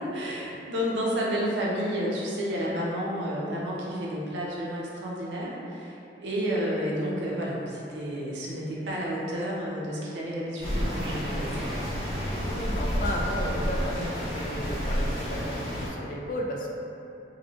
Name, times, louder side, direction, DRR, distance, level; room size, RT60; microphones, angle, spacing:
voice 1, 0.0-11.8, equal, 85° right, -5 dB, 0.6 m, -31 dB
sound 1, 10.6-15.9, equal, 90° left, 1.4 m, -30 dB
voice 2, 12.2-16.7, equal, 45° left, -1 dB, 0.3 m, -34 dB
3.1 x 2.7 x 2.6 m, 2.9 s
head